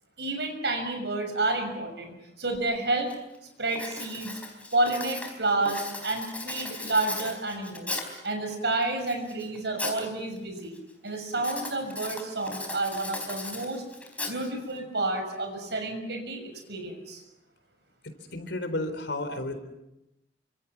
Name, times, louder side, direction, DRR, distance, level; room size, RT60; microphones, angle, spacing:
voice 1, 0.2-3.1 3.6-4.4 4.7-7.9 8.2-10.8 11.0-13.8 14.3-17.2, right 2 dB, 65° right, 5 dB, 6.3 m, -30 dB
Writing, 2.5-2.6 3.1-3.4 3.7-8.3 8.8-10.1 10.4-10.8 11.4-14.8, left 2 dB, 10° left, 4.3 m, -37 dB
voice 2, 18.0-19.6, left 1 dB, 75° left, 8 dB, 4.0 m, -32 dB
28.5 x 25.5 x 6.0 m, 0.90 s
head